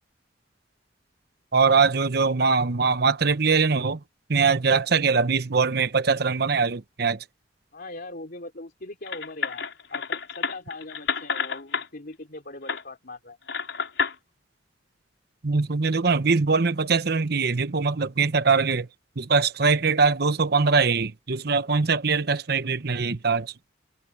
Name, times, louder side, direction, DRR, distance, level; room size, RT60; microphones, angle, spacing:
voice 1, 1.5-4.0 4.3-7.2 15.4-18.9 19.2-23.5, right 4 dB, 60° right, 0.9 m, -22 dB
voice 2, 7.7-13.4, left 2 dB, 55° left, 3.6 m, -41 dB
sound 1, 9.1-11.9 12.7-12.8 13.5-14.2, left 6 dB, 80° left, 5.4 m, -29 dB
head